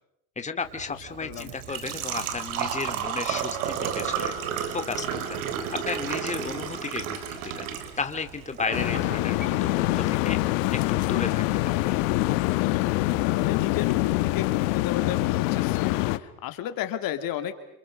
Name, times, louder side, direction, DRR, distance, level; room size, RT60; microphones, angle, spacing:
voice 1, 0.4-4.3 4.7-5.4 5.8-7.6 8.0-10.4 10.9-11.9, left 4 dB, 20° left, 7 dB, 2.4 m, -34 dB
Engine / Trickle dribble / Fill (with liquid), 0.6-12.6, right 8 dB, 80° right, 3.9 m, -34 dB
Telephone, 8.6-9.7, right 1 dB, 25° right, 7.8 m, -36 dB
sound 1, 8.7-16.2, left 19 dB, 75° left, 1.3 m, -25 dB
voice 2, 13.3-17.5, left 11 dB, 60° left, 9 dB, 2.7 m, -33 dB
28.5 x 28.0 x 6.4 m, 0.81 s
supercardioid pair, 90°, 39 cm